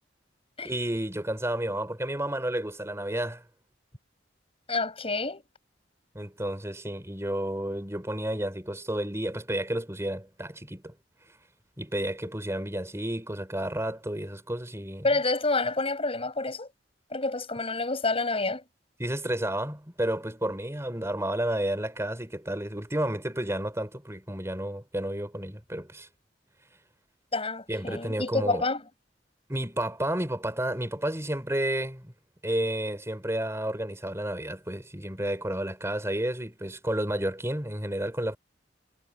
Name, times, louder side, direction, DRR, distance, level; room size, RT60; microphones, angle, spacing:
voice 1, 0.6-3.4 6.1-10.9 11.8-15.0 19.0-26.1 27.7-28.7 29.5-32.1 32.4-38.4, right 1 dB, 15° right, 4.4 m, -31 dB
voice 2, 4.7-5.4 15.0-16.7 17.1-18.6 27.3-28.8, left 3 dB, 30° left, 7.0 m, -28 dB
head